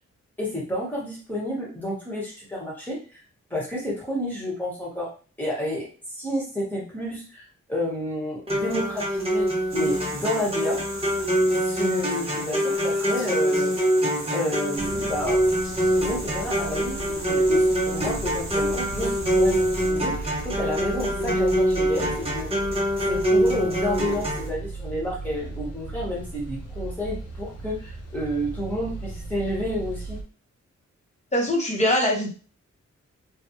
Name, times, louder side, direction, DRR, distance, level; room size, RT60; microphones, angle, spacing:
voice 1, 0.4-3.2 3.5-5.1 5.4-5.9 6.2-10.8 11.5-13.7 14.3-15.4 16.0-22.5 23.0-30.2, left 1 dB, 5° left, -5 dB, 1.3 m, -30 dB
sound 1, 8.5-24.5, equal, 20° right, 0.9 m, -24 dB
sound 2, 9.7-19.9, right 2 dB, 45° right, 1.2 m, -39 dB
sound 3, 14.7-30.2, right 2 dB, 60° left, 0.6 m, -37 dB
voice 2, 31.3-32.3, left 1 dB, 25° left, -1 dB, 0.9 m, -22 dB
3.3 x 2.3 x 2.8 m, 0.38 s
wide cardioid pair, 155°, 29 cm